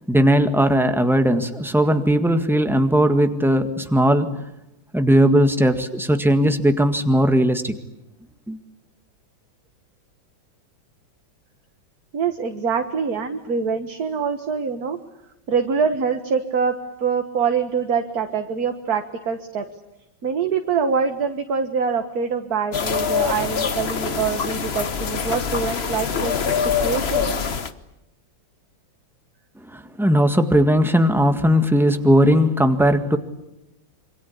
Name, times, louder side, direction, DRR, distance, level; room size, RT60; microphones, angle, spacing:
voice 1, 0.1-4.4 4.9-7.7 8.5-8.6 29.7-33.2, equal, ahead, 7 dB, 1.6 m, -18 dB
voice 2, 12.1-15.0 15.5-16.7 17.0-19.7 20.2-26.6 26.8-27.4, right 6 dB, 50° right, 6 dB, 1.9 m, -24 dB
sound 1, 22.7-27.7, left 6 dB, 40° left, 1.1 m, -24 dB
27.0 x 24.5 x 8.6 m, 0.91 s
omnidirectional pair, 2.1 m